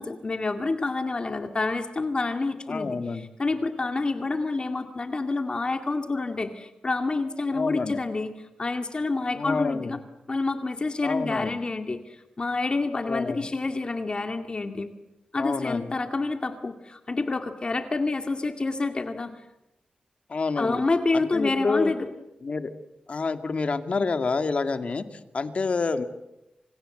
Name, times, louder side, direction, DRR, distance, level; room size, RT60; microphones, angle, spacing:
voice 1, 0.0-8.3 8.6-10.0 10.3-14.9 15.3-19.3 20.6-22.1, left 3 dB, 35° left, 6 dB, 2.1 m, -28 dB
voice 2, 2.7-3.2 7.5-8.0 9.4-10.0 11.0-11.6 13.0-13.5 15.4-15.9 20.3-20.8 21.1-21.9 22.4-22.7 23.1-26.0, left 4 dB, 50° left, 9 dB, 2.1 m, -28 dB
28.5 x 27.0 x 7.8 m, 0.90 s
wide cardioid pair, 120°, 3 cm